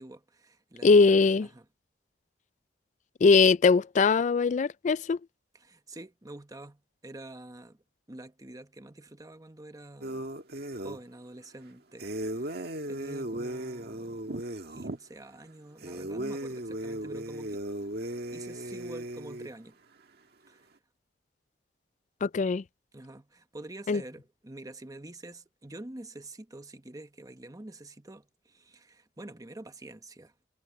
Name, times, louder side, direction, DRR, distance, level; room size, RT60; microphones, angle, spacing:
voice 1, 0.0-1.7 5.5-10.3 10.8-12.1 12.3-14.3 14.7-17.6 18.3-19.8 20.5-20.7 22.9-30.3, right 2 dB, 20° right, 1.1 m, -47 dB
voice 2, 0.8-1.5 3.2-5.2 22.2-22.6 23.9-24.0, left 4 dB, 40° left, 0.4 m, -21 dB
sound 1, 10.0-11.0 12.0-15.0 15.8-19.5, right 1 dB, 60° right, 1.8 m, -36 dB
head